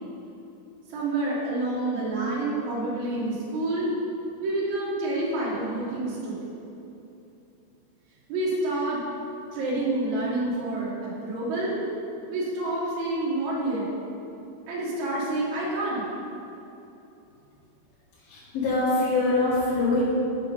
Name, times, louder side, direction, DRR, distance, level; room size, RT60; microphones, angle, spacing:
voice 1, 0.9-3.9 4.4-6.5 8.3-9.0 9.5-11.8 12.3-13.9 14.7-16.0, right 2 dB, 65° right, -7 dB, 2.6 m, -28 dB
voice 2, 18.2-20.0, left 2 dB, 60° left, -9 dB, 2.4 m, -24 dB
6.6 x 6.1 x 5.2 m, 2.9 s
omnidirectional pair, 3.7 m